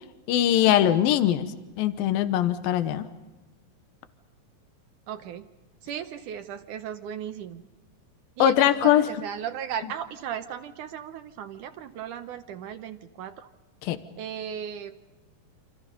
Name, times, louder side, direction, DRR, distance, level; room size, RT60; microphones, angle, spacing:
voice 1, 0.3-3.1 8.4-9.1 9.8-9.9 13.8-14.0, left 12 dB, 75° left, 11 dB, 2.8 m, -22 dB
voice 2, 5.1-5.5 5.8-7.6 8.4-13.5 14.2-14.9, right 9 dB, 70° right, 9 dB, 2.1 m, -36 dB
28.0 x 27.5 x 5.4 m, 1.1 s
omnidirectional pair, 4.2 m